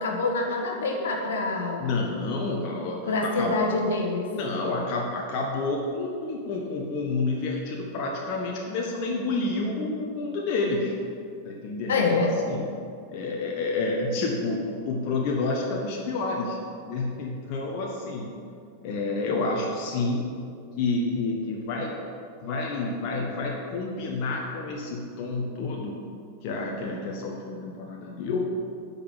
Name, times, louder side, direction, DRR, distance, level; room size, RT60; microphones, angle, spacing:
voice 1, 0.0-1.9 3.1-4.3 11.9-12.3, left 3 dB, 60° left, 1 dB, 1.6 m, -26 dB
voice 2, 1.8-3.6 4.3-11.0 11.4-12.7 13.1-18.4 18.8-20.3 20.8-22.0 22.4-26.0 26.4-28.5, left 3 dB, 45° left, -1 dB, 1.3 m, -29 dB
10.0 x 5.5 x 8.2 m, 2.4 s
figure-of-eight pair, 90°, 0 cm